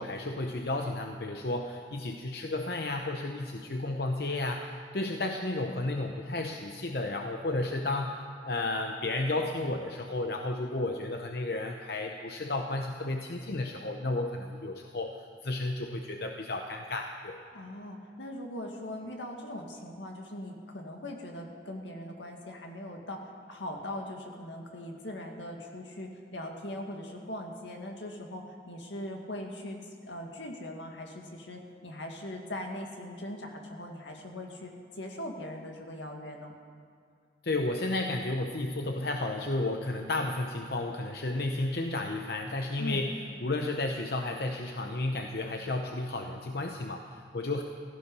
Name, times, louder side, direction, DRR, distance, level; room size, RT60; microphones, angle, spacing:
voice 1, 0.0-8.2 8.4-15.1 15.4-17.4 37.4-43.1 43.4-47.6, left 2 dB, 55° left, 3 dB, 0.8 m, -32 dB
voice 2, 17.5-23.2 23.5-36.6 42.8-43.1, left 1 dB, 80° left, 2 dB, 2.0 m, -40 dB
16.0 x 14.5 x 5.4 m, 2.2 s
head